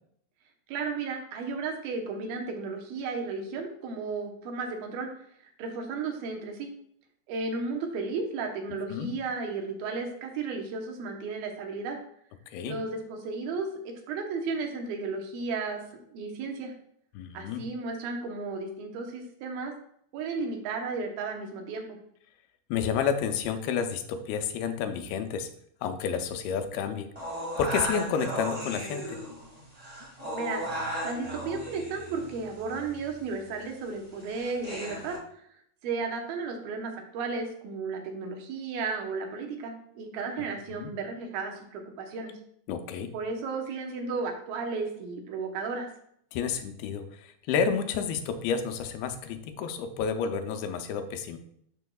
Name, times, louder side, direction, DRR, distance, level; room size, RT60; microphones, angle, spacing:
voice 1, 0.7-5.1 5.6-6.7 7.3-12.0 12.7-15.8 16.1-16.7 17.3-19.7 20.1-22.0 30.3-35.4 35.8-42.3 43.1-45.9, right 4 dB, 85° right, 3 dB, 2.8 m, -34 dB
voice 2, 12.5-12.8 17.1-17.7 22.7-25.5 25.8-27.1 27.6-29.2 40.7-40.9 42.7-43.1 46.3-51.4, left 6 dB, 90° left, 7 dB, 2.6 m, -30 dB
sound 1, 27.2-35.2, equal, 60° right, 0.4 m, -36 dB
11.5 x 4.6 x 2.3 m, 0.68 s
omnidirectional pair, 4.2 m